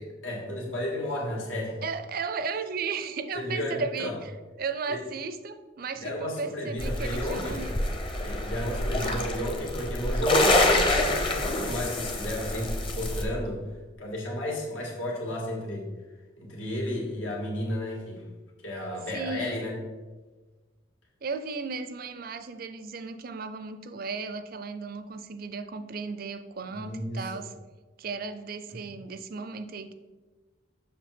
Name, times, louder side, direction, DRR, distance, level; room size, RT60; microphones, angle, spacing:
voice 1, 0.0-1.8 3.3-4.1 4.9-5.0 6.0-7.6 8.2-13.6 14.0-15.9 16.4-18.2 18.6-19.7 26.7-27.3, left 1 dB, 85° left, -3 dB, 2.4 m, -33 dB
voice 2, 1.8-4.3 4.6-7.8 9.0-9.3 19.1-19.6 21.2-27.5 28.0-29.9, right 4 dB, 50° right, 10 dB, 0.5 m, -35 dB
sound 1, 6.8-13.2, left 1 dB, 25° left, 0.8 m, -27 dB
7.3 x 6.3 x 4.3 m, 1.3 s
head